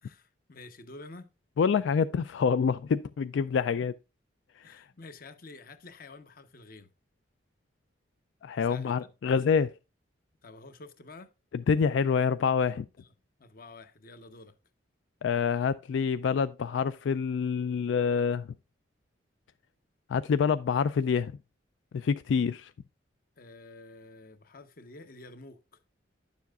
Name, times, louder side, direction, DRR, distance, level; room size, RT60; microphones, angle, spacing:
voice 1, 0.0-1.3 4.6-6.9 8.6-9.1 10.4-11.3 13.0-13.1 13.4-14.5 23.4-25.8, left 2 dB, 50° left, 0.9 m, -49 dB
voice 2, 1.6-3.9 4.7-4.8 8.4-9.7 11.5-12.9 15.2-18.5 20.1-21.3 21.9-22.7, left 6 dB, 80° left, 0.3 m, -27 dB
10.5 x 7.1 x 2.4 m
head